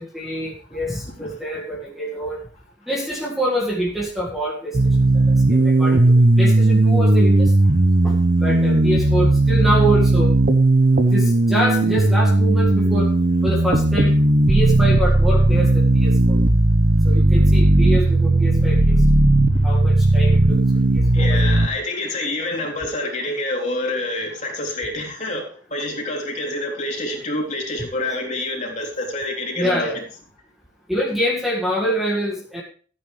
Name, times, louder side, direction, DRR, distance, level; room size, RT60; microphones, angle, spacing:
voice 1, 0.0-2.4 2.9-7.5 8.0-10.3 11.1-13.1 13.4-14.2 14.5-16.4 17.1-19.0 19.6-20.6 20.9-21.5 29.6-30.0 30.9-32.6, equal, ahead, -3 dB, 1.9 m, -25 dB
sound 1, 4.7-21.7, right 2 dB, 50° right, 1.0 m, -16 dB
voice 2, 21.1-29.9, left 2 dB, 40° left, -1 dB, 3.6 m, -27 dB
14.5 x 9.6 x 3.3 m, 0.41 s
head